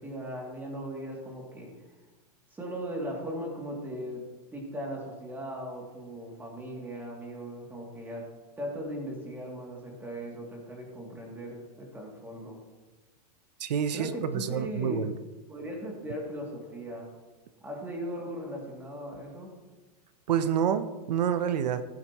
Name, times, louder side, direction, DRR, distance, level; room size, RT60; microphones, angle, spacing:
voice 1, 0.0-1.9 2.5-4.2 4.5-8.3 8.6-12.6 13.9-15.0 15.5-17.1 17.6-19.5, equal, 10° right, -1 dB, 2.6 m, -38 dB
voice 2, 13.6-15.1 20.3-21.8, right 8 dB, 85° right, 11 dB, 0.8 m, -28 dB
15.5 x 10.5 x 3.0 m, 1.3 s
supercardioid pair, 150°, 21 cm